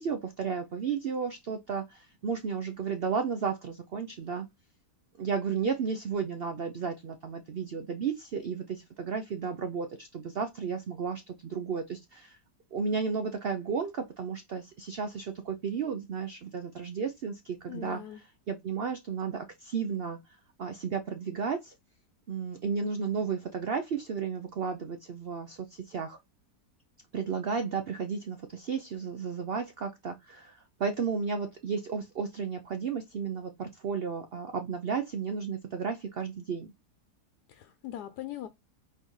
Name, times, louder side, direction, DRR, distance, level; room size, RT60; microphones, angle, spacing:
voice 1, 0.0-4.5 5.2-12.4 12.7-20.2 20.6-21.7 22.3-26.2 27.1-36.7, right 6 dB, 80° right, 0.5 m, -33 dB
voice 2, 17.7-18.2 37.5-38.5, left 11 dB, 80° left, 1.2 m, -40 dB
4.2 x 3.9 x 3.1 m
omnidirectional pair, 1.8 m